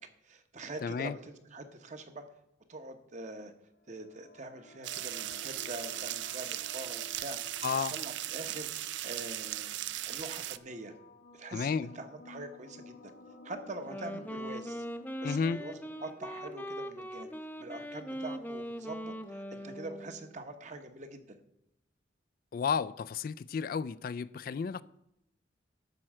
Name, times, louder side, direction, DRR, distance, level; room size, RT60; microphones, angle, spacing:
voice 1, 0.2-2.2 2.7-3.5 3.9-7.4 7.9-8.7 9.0-9.8 10.0-10.9 11.3-13.1 13.4-14.9 15.2-17.3 17.6-21.4, right 2 dB, 40° right, 1.0 m, -44 dB
voice 2, 0.8-1.2 7.6-7.9 11.5-11.9 15.2-15.6 22.5-24.8, left 6 dB, 50° left, 0.3 m, -32 dB
sound 1, 3.8-17.4, left 3 dB, 90° left, 1.4 m, -55 dB
sound 2, 4.8-10.6, right 14 dB, 75° right, 0.4 m, -38 dB
Wind instrument woodwind instrument, 13.7-20.3, equal, 10° left, 0.6 m, -41 dB
12.0 x 4.5 x 7.5 m
head